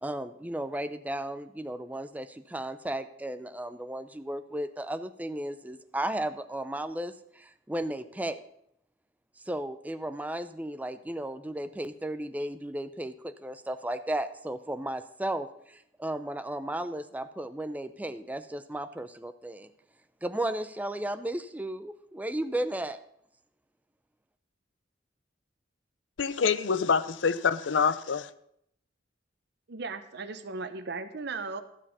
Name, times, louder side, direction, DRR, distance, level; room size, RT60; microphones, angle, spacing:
voice 1, 0.0-8.4 9.5-19.7 20.2-23.0, right 1 dB, 10° right, 0.4 m, -34 dB
voice 2, 26.2-28.3, left 6 dB, 70° left, 0.5 m, -26 dB
voice 3, 29.7-31.6, right 4 dB, 60° right, 0.8 m, -36 dB
12.0 x 7.4 x 5.4 m
head